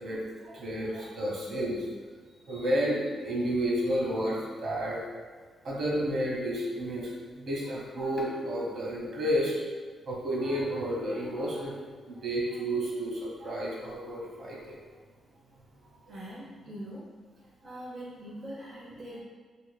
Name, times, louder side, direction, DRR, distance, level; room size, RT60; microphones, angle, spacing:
voice 1, 0.0-1.8 2.4-5.0 5.6-9.5 10.1-14.8 16.1-16.2, equal, 50° right, -4 dB, 1.0 m, -31 dB
voice 2, 16.1-17.1 17.6-19.2, equal, 20° right, -7 dB, 0.6 m, -42 dB
5.2 x 2.6 x 2.2 m, 1.5 s
cardioid pair, 140°, 0 cm